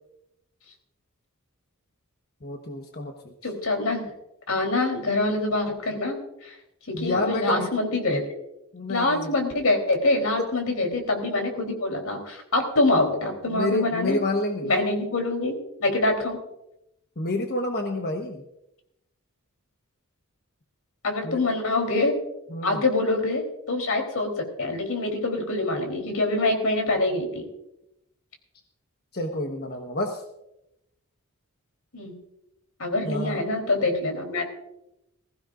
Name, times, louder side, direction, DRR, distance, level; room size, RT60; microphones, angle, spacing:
voice 1, 2.4-3.3 6.9-7.7 8.7-9.3 10.4-10.5 13.5-14.7 17.2-18.4 21.2-21.5 22.5-22.8 29.1-30.2 33.0-33.4, left 2 dB, 50° left, 2 dB, 1.3 m, -29 dB
voice 2, 3.4-4.1 4.5-6.5 6.9-8.2 8.9-14.2 14.6-16.4 21.0-22.2 22.6-24.3 24.6-27.4 31.9-32.2 32.8-34.5, left 2 dB, 85° left, 3 dB, 3.8 m, -25 dB
21.0 x 15.5 x 2.6 m, 0.86 s
head